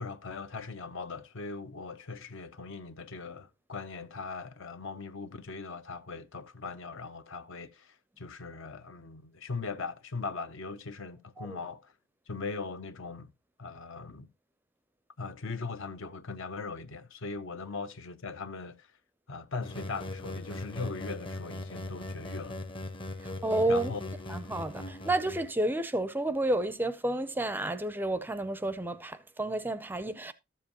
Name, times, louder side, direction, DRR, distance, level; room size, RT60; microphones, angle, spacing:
voice 1, 0.0-11.9 12.3-13.3 13.6-14.3 15.2-18.9 19.3-22.6 23.7-24.0, left 4 dB, 60° left, 0.7 m, -40 dB
sound 1, 19.6-25.5, left 2 dB, 25° left, 0.7 m, -40 dB
voice 2, 23.2-23.9 24.3-30.3, right 1 dB, 10° right, 0.5 m, -30 dB
13.0 x 7.5 x 2.9 m
head